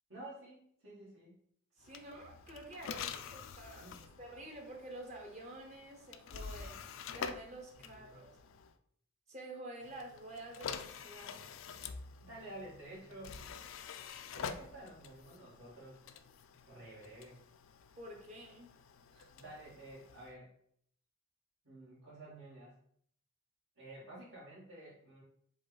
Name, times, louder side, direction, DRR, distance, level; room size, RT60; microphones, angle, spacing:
voice 1, 0.1-1.4 3.7-4.1 7.7-8.1 12.2-13.4 14.3-16.0 16.7-17.4 19.3-20.5 21.6-22.8 23.8-25.2, right 1 dB, 80° right, -11 dB, 1.7 m, -51 dB
sound 1, 1.8-8.8 9.8-20.3, left 6 dB, 65° left, 0.3 m, -47 dB
voice 2, 1.8-3.9 4.2-6.8 7.1-8.4 9.3-11.4 18.0-18.7 19.1-19.3, right 1 dB, 35° right, 1 dB, 0.7 m, -49 dB
5.0 x 2.3 x 3.9 m, 0.64 s
head